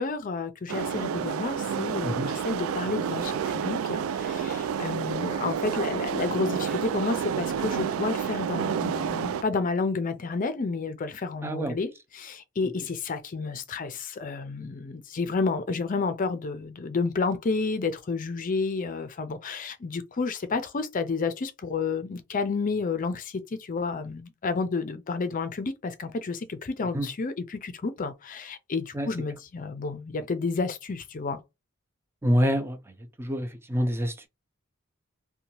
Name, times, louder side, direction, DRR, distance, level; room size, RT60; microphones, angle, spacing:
voice 1, 0.0-11.9 12.1-31.4, left 4 dB, 40° left, 0.5 m, -30 dB
sound 1, 0.7-9.4, right 7 dB, 75° right, 0.3 m, -29 dB
voice 2, 11.4-11.8 26.9-27.1 28.9-29.1 32.2-32.8 33.2-34.3, equal, 10° right, 0.5 m, -26 dB
2.7 x 2.2 x 2.9 m
head